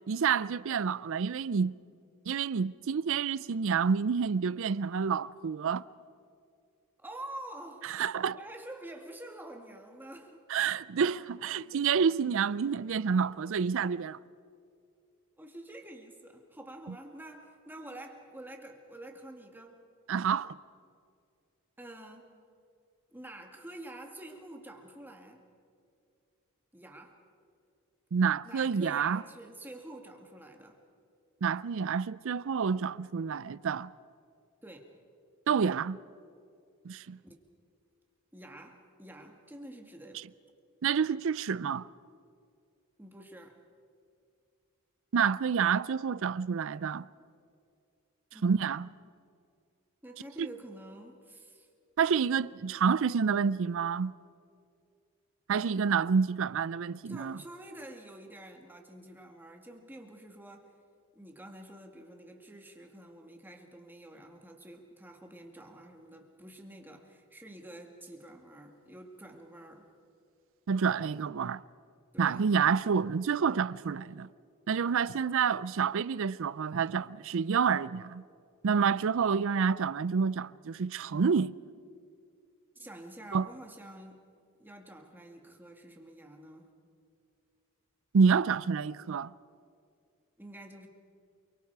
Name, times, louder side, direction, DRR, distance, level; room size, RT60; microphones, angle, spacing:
voice 1, 0.1-1.7 2.3-5.8 7.8-8.4 10.5-14.2 20.1-20.6 28.1-29.2 31.4-33.9 35.5-36.0 36.8-37.2 40.8-41.9 45.1-47.1 48.4-48.9 50.4-50.5 52.0-54.1 55.5-57.4 70.7-71.6 72.2-74.3 74.7-78.2 78.6-81.5 83.3-83.5 88.1-89.3, right 6 dB, 60° right, 0.4 m, -28 dB
voice 2, 7.0-8.0 8.3-10.4 15.4-19.9 21.8-22.3 23.1-25.5 26.7-27.2 28.4-30.8 34.6-34.9 37.2-37.4 38.3-40.3 43.0-43.6 48.3-48.7 50.0-51.7 57.1-60.8 61.1-69.9 72.1-72.5 82.8-84.3 84.6-86.7 90.4-90.9, right 1 dB, 10° right, 2.1 m, -48 dB
28.5 x 23.5 x 4.7 m
head